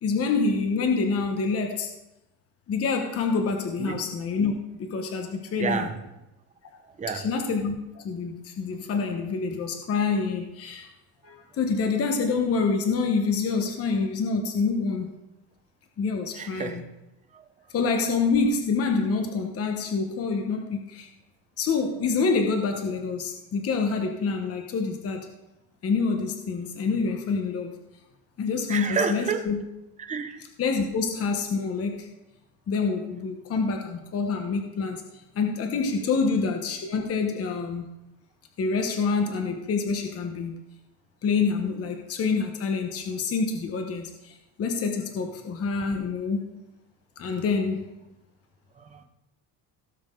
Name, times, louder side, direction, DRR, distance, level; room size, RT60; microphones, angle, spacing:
voice 1, 0.0-1.9 2.7-4.5 4.8-5.9 7.2-10.9 11.2-15.1 16.0-16.8 17.7-21.1 21.6-25.3 25.8-27.8 28.4-29.6 30.6-32.1 32.7-35.0 35.3-37.9 38.6-40.6 41.2-46.5 47.2-47.9, left 4 dB, 35° left, 4 dB, 1.2 m, -27 dB
voice 2, 5.6-6.0 6.8-7.3 16.3-16.9 17.3-17.4 28.7-29.4 30.1-30.4 48.8-49.0, right 6 dB, 15° right, 6 dB, 0.8 m, -30 dB
17.0 x 7.2 x 3.8 m, 0.94 s
cardioid pair, 160°, 43 cm